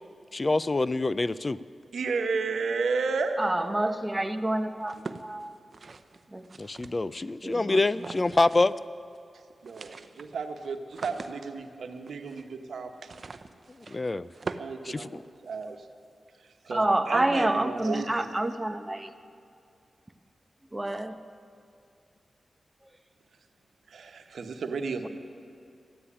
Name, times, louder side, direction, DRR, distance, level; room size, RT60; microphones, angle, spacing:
voice 1, 0.3-1.6 6.6-8.8 13.9-14.3 14.8-15.1, left 2 dB, 35° left, 17 dB, 0.4 m, -26 dB
voice 2, 1.9-3.4 9.6-13.2 14.6-15.8 16.4-18.3 23.9-25.1, right 4 dB, 80° right, 6 dB, 1.1 m, -33 dB
voice 3, 3.4-5.6 6.3-6.5 7.4-8.1 9.8-10.0 16.7-19.1 20.7-21.2, right 1 dB, 20° right, 8 dB, 1.0 m, -28 dB
sound 1, 4.8-7.3 7.9-8.8 9.1-9.2 9.5-15.6, right 4 dB, 60° right, 0.7 m, -43 dB
14.0 x 9.9 x 10.0 m, 2.5 s
cardioid pair, 50°, 0 cm